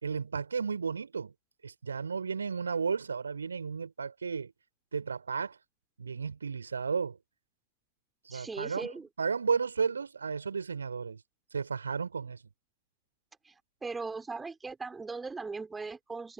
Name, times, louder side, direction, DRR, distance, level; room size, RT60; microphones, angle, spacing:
voice 1, 0.0-1.3 1.6-4.5 4.9-5.6 6.0-7.2 8.2-11.2 11.5-12.4, right 5 dB, 75° right, 4.3 m, -33 dB
voice 2, 8.3-9.1 13.8-16.3, right 4 dB, 10° right, 4.5 m, -39 dB
figure-of-eight pair, 90°, 0 cm